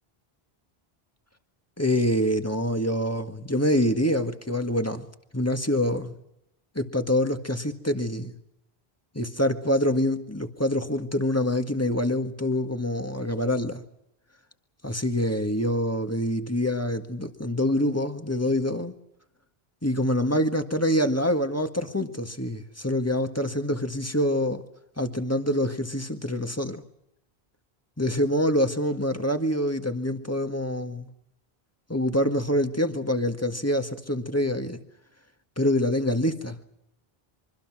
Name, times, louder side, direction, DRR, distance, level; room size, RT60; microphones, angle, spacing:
voice 1, 1.8-5.1 5.3-6.2 6.8-8.3 9.2-13.8 14.8-18.9 19.8-24.6 25.0-26.8 28.0-31.1 31.9-34.8 35.6-36.6, left 1 dB, 15° left, 1.8 m, -25 dB
26.0 x 24.0 x 6.2 m
omnidirectional pair, 1.0 m